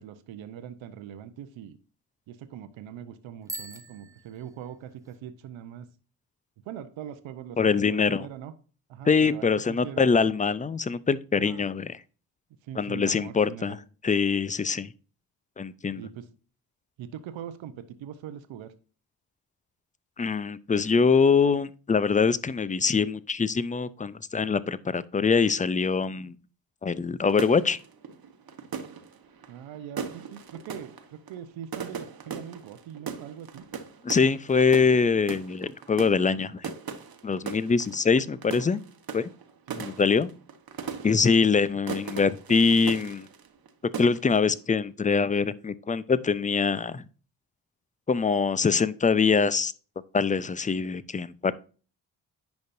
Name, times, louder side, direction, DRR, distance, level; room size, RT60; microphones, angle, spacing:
voice 1, 0.0-1.8 2.3-5.9 6.6-8.5 8.9-10.3 11.3-11.7 12.6-13.8 16.0-16.3 17.0-18.7 29.5-33.7 39.7-39.8, right 9 dB, 65° right, 0.9 m, -42 dB
Bicycle bell, 3.4-5.2, right 2 dB, 5° right, 0.8 m, -42 dB
voice 2, 7.6-8.3 9.1-11.9 12.8-13.8 14.0-14.9 15.6-16.0 20.2-26.3 26.8-27.8 34.0-36.7 37.2-38.8 39.1-39.3 39.8-40.3 41.0-43.3 44.0-47.0 48.1-49.7 50.1-51.5, left 5 dB, 15° left, 0.5 m, -24 dB
sound 1, 27.3-43.7 43.9-44.5, right 6 dB, 45° right, 1.2 m, -39 dB
10.5 x 5.3 x 2.6 m
hypercardioid pair, 40°, 49 cm